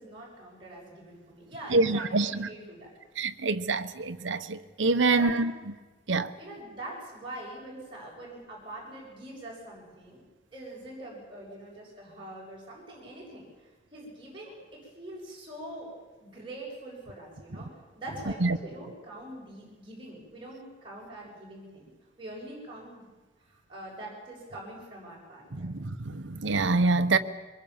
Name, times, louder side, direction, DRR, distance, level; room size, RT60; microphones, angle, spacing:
voice 1, 0.0-2.9 5.1-5.3 6.4-10.2 10.5-13.5 13.9-15.9 16.2-17.7 18.0-21.9 22.2-23.0 23.5-25.7, right 1 dB, 25° right, 7.2 m, -43 dB
voice 2, 1.7-2.5 3.2-5.5 6.1-6.3 18.4-18.6 25.5-27.2, right 3 dB, 75° right, 1.0 m, -26 dB
23.5 x 21.5 x 7.3 m
head